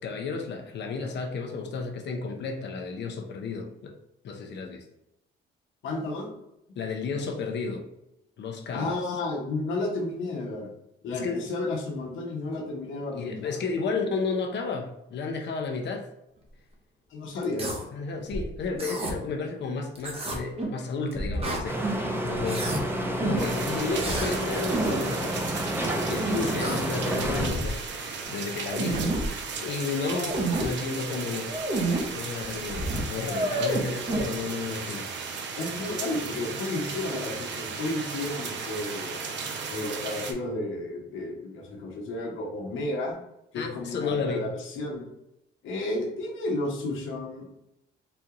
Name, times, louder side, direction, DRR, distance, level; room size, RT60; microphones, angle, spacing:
voice 1, 0.0-4.0 4.2-4.8 6.8-7.8 8.4-9.0 11.1-11.5 13.1-16.1 17.9-21.8 22.2-22.8 23.0-25.5 26.1-29.0 29.6-31.5 32.1-35.1 43.5-44.5, left 4 dB, 60° left, 3 dB, 0.7 m, -32 dB
voice 2, 5.8-6.3 8.7-10.7 11.0-13.6 17.1-17.9 35.6-39.2 39.7-43.2 43.5-45.0 45.6-47.6, left 2 dB, 80° left, -1 dB, 1.0 m, -32 dB
sound 1, 17.4-17.8 18.3-19.1 20.0-20.8 21.1-22.0 22.3-22.8 23.2-23.5 24.0-24.4 24.7-25.0 26.2-26.9 27.2-27.8 28.2-28.3 28.6-29.3 29.9-30.7 31.4-32.0 32.4-32.5 32.7-34.2, right 2 dB, 30° right, 0.9 m, -29 dB
sound 2, 21.6-27.5, right 1 dB, 10° right, 0.6 m, -30 dB
sound 3, 23.4-40.3, right 5 dB, 65° right, 0.6 m, -36 dB
4.1 x 2.3 x 2.9 m, 0.85 s
cardioid pair, 90°, 20 cm